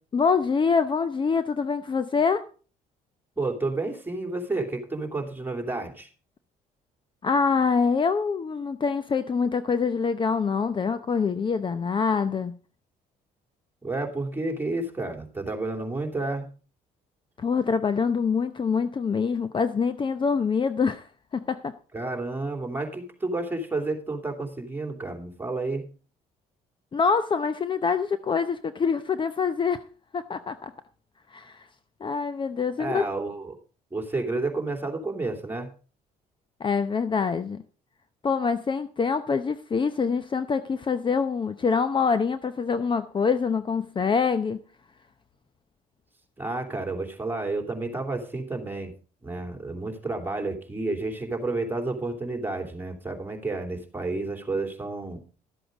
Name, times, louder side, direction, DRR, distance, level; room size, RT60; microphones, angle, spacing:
voice 1, 0.1-2.4 7.2-12.5 17.4-21.1 21.3-21.7 26.9-29.8 30.1-30.7 31.3-31.6 32.0-33.0 36.6-37.6 38.2-44.6, left 5 dB, 30° left, 12 dB, 0.7 m, -25 dB
voice 2, 3.4-6.1 13.8-16.5 21.9-25.9 32.8-33.5 33.9-35.7 46.4-48.9 49.2-55.2, right 2 dB, 15° right, 4 dB, 2.8 m, -30 dB
12.5 x 7.8 x 5.0 m, 0.38 s
cardioid pair, 90°, 15 cm